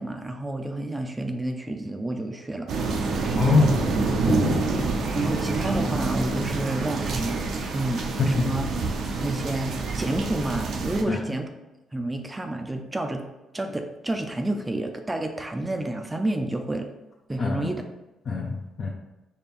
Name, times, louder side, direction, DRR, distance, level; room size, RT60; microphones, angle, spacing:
voice 1, 0.0-2.7 3.1-3.3 5.1-7.5 7.7-8.6 9.2-11.5 11.9-13.3 13.5-16.9 17.3-17.8, right 2 dB, 15° right, 5 dB, 0.4 m, -30 dB
sound 1, 2.7-11.0, right 3 dB, 70° right, 0.5 m, -27 dB
voice 2, 3.3-4.0 4.3-4.7 8.3-8.6 11.1-11.2 17.4-17.7 18.3-18.9, left 4 dB, 45° left, -1 dB, 0.5 m, -24 dB
4.1 x 2.3 x 3.5 m, 1.0 s
cardioid pair, 90°, 0 cm